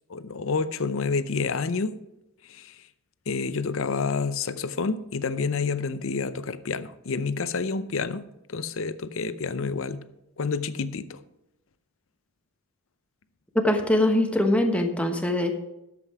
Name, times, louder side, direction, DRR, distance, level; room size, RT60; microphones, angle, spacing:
voice 1, 0.1-2.0 2.5-2.7 3.3-8.2 8.5-10.1 10.4-11.2, left 4 dB, 65° left, 13 dB, 0.6 m, -29 dB
voice 2, 13.5-15.5, left 1 dB, 5° left, 4 dB, 1.1 m, -22 dB
11.0 x 7.6 x 4.8 m, 0.87 s
head